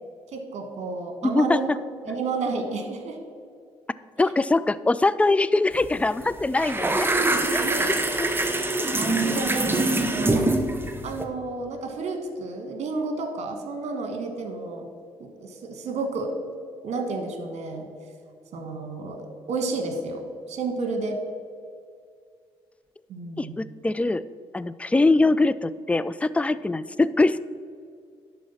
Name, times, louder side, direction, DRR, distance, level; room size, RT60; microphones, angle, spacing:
voice 1, 0.3-1.7 2.0-3.2 7.6-8.0 9.0-10.5 11.0-14.9 15.6-16.3 16.8-17.9 18.5-20.2 20.5-21.2 23.1-23.6, right 3 dB, 55° right, 5 dB, 1.4 m, -31 dB
voice 2, 1.2-1.8 4.2-7.1 7.5-8.3 9.4-9.6 23.4-24.2 24.5-27.4, left 2 dB, 10° left, 16 dB, 0.3 m, -23 dB
sound 1, 5.7-5.9 6.2-11.2, right 2 dB, 15° right, 1.0 m, -24 dB
11.0 x 4.2 x 5.7 m, 2.2 s
hypercardioid pair, 50°, 13 cm